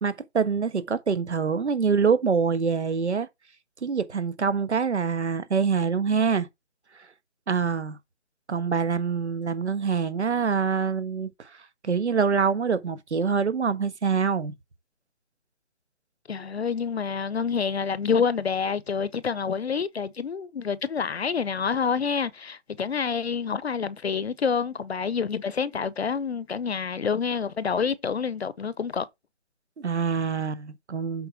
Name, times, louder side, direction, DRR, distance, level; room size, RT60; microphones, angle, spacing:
voice 1, 0.0-3.3 3.8-6.5 7.5-8.0 8.5-11.5 11.8-14.5 16.3-16.4 29.8-31.3, right 5 dB, 70° right, 1.4 m, -25 dB
voice 2, 16.3-29.1, left 6 dB, 60° left, 0.7 m, -27 dB
7.9 x 4.4 x 4.5 m
figure-of-eight pair, 160°, 35 cm